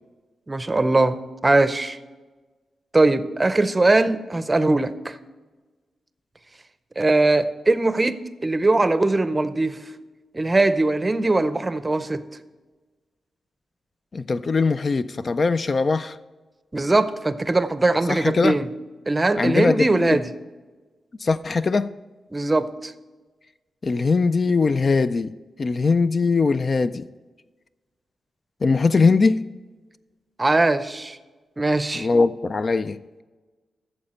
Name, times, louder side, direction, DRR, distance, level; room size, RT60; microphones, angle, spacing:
voice 1, 0.5-2.0 2.9-5.2 7.0-9.8 10.3-12.2 16.7-18.7 19.1-20.3 22.3-22.9 30.4-31.2 31.6-32.1, right 2 dB, 20° right, 0.6 m, -21 dB
voice 2, 14.1-16.2 18.1-18.6 19.4-20.2 21.2-21.9 23.8-25.3 25.6-27.1 28.6-29.5 31.9-33.2, left 4 dB, 40° left, 0.3 m, -21 dB
14.0 x 7.0 x 4.3 m
cardioid pair, 100°, 0 cm